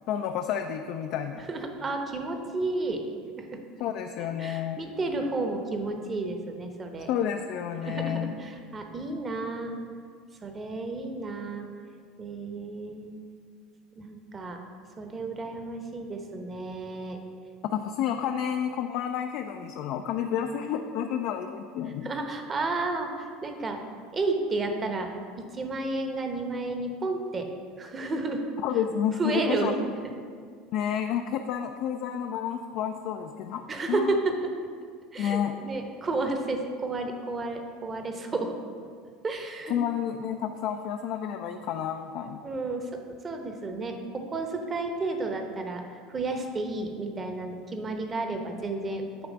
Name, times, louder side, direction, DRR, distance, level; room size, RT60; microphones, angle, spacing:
voice 1, 0.1-1.4 3.8-4.8 7.0-8.3 17.6-22.1 28.6-29.7 30.7-33.6 33.9-34.2 35.2-35.5 39.7-42.4, left 9 dB, 60° left, 5 dB, 0.3 m, -30 dB
voice 2, 1.4-3.0 3.3-3.6 4.4-7.1 7.8-9.7 10.4-11.7 12.2-13.2 14.0-14.6 15.0-17.2 22.0-23.1 23.4-23.8 24.1-25.1 25.5-27.4 27.8-28.4 29.2-30.1 33.7-34.3 35.1-38.5 39.2-39.8 42.4-45.8 46.1-49.3, right 3 dB, 30° right, 4 dB, 0.9 m, -31 dB
8.8 x 3.3 x 5.1 m, 2.1 s
hypercardioid pair, 80°, 0 cm